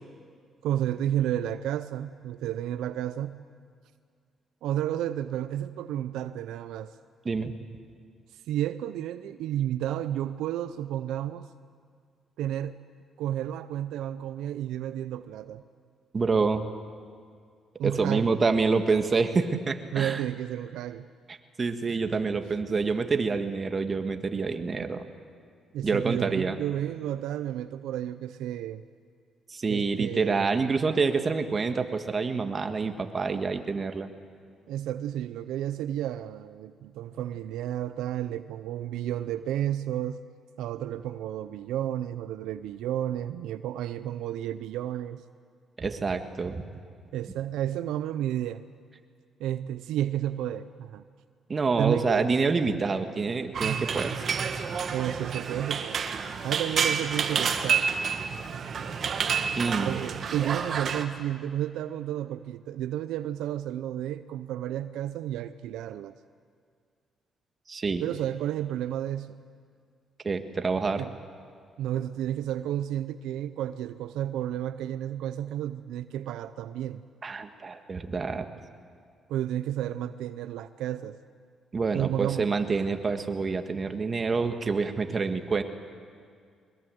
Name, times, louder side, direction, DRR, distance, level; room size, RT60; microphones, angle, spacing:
voice 1, 0.6-3.4 4.6-6.9 8.3-11.5 12.4-12.9 13.2-15.6 17.8-18.3 19.9-21.1 25.7-28.8 29.7-30.6 34.7-40.3 40.6-45.2 47.1-48.6 49.4-51.0 51.8-52.3 53.6-53.9 54.9-56.1 56.4-57.9 59.8-66.1 68.0-69.4 71.0-71.2 71.8-77.0 79.3-81.2 81.9-82.5, right 11 dB, 90° right, 12 dB, 0.6 m, -32 dB
voice 2, 16.1-16.6 17.8-20.2 21.3-25.1 25.8-26.6 29.5-34.1 45.8-46.6 51.5-54.2 59.6-60.0 67.7-68.0 70.2-71.0 77.2-78.5 81.7-85.6, right 4 dB, 35° right, 7 dB, 1.7 m, -27 dB
sound 1, 53.5-61.0, right 6 dB, 55° right, 1.6 m, -29 dB
22.0 x 21.5 x 7.9 m, 2.2 s
cardioid pair, 90°, 0 cm